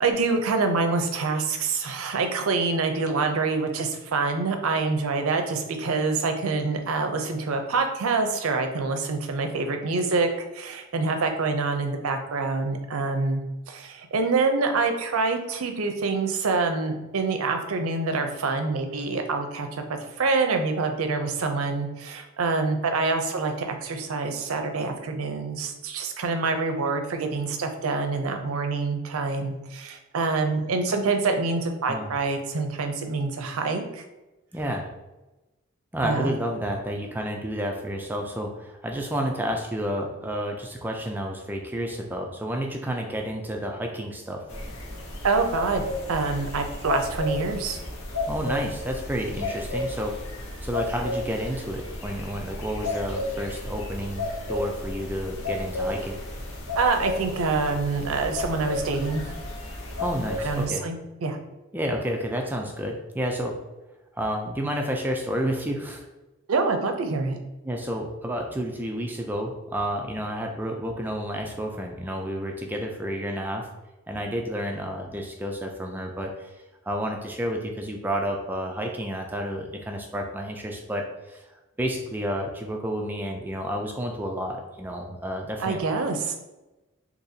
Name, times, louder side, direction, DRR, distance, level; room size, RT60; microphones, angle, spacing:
voice 1, 0.0-13.4 13.7-34.0 36.0-36.3 45.2-45.8 46.1-47.8 56.8-59.2 60.4-61.4 66.5-67.4 85.6-86.3, right 4 dB, 80° right, 5 dB, 0.5 m, -26 dB
voice 2, 34.5-34.9 35.9-44.4 48.3-50.2 50.6-56.2 60.0-60.9 61.7-63.6 64.1-66.0 67.6-73.7 74.1-76.5 76.9-81.4 81.8-85.8, equal, 10° right, 2 dB, 0.3 m, -30 dB
sound 1, 44.5-60.6, left 2 dB, 70° left, 0.8 m, -33 dB
4.0 x 2.8 x 2.7 m, 1.1 s
head